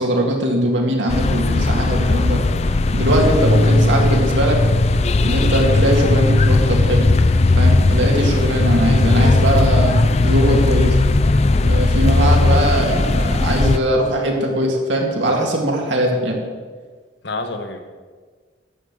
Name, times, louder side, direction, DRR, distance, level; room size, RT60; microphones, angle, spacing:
voice 1, 0.0-2.4 2.9-4.6 5.2-7.1 7.6-10.0 10.2-11.0 11.6-16.4, right 1 dB, 75° right, 0 dB, 2.1 m, -20 dB
sound 1, 1.1-13.8, left 2 dB, 35° left, 0.4 m, -16 dB
voice 2, 3.5-4.0 17.2-17.8, left 2 dB, 65° left, 5 dB, 1.2 m, -29 dB
11.0 x 7.4 x 6.4 m, 1.5 s
head